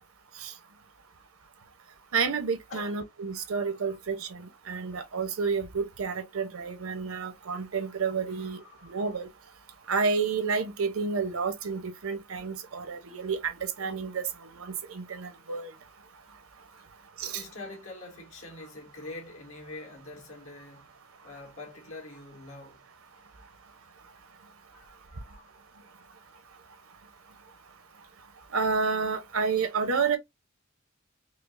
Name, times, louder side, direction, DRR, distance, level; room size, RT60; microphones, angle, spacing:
voice 1, 2.1-9.3 9.9-15.7 17.2-17.4 28.5-30.2, right 5 dB, 85° right, 0.8 m, -30 dB
voice 2, 3.4-4.0 8.3-9.2 17.3-20.9 21.2-22.8 24.7-25.5, left 2 dB, 85° left, 1.8 m, -45 dB
5.0 x 2.0 x 2.5 m
head